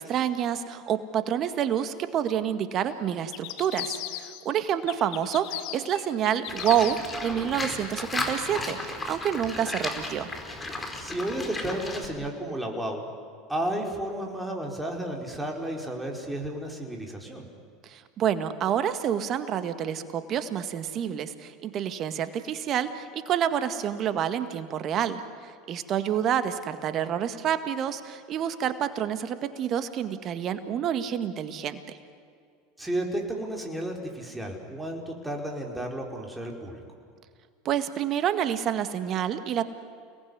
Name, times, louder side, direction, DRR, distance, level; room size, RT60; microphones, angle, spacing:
voice 1, 0.0-10.3 17.8-32.0 37.7-39.6, right 9 dB, 45° right, 10 dB, 1.9 m, -28 dB
sound 1, 3.3-4.5 4.9-7.2, left 14 dB, 60° left, 1.7 m, -37 dB
Livestock farm animals working animals, 6.5-12.1, left 2 dB, 20° left, 4.7 m, -34 dB
voice 2, 11.0-13.0 13.5-17.5 32.8-36.8, right 1 dB, 5° right, 0 dB, 4.8 m, -32 dB
30.0 x 19.0 x 9.7 m, 2.3 s
hypercardioid pair, 80°, 0 cm